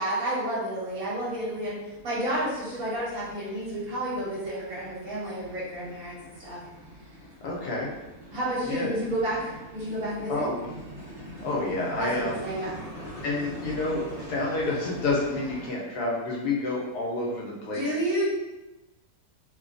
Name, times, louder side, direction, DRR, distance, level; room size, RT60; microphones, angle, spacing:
voice 1, 0.0-6.6 8.3-10.5 12.0-12.7 17.7-18.3, right 1 dB, 60° right, -8 dB, 1.4 m, -30 dB
sound 1, 0.9-15.7, equal, 45° right, 1.1 m, -44 dB
voice 2, 7.4-7.9 8.6-8.9 10.3-10.7 11.4-12.5 13.2-17.9, left 2 dB, 80° left, -3 dB, 1.2 m, -29 dB
3.1 x 2.3 x 2.4 m, 1.0 s
omnidirectional pair, 1.7 m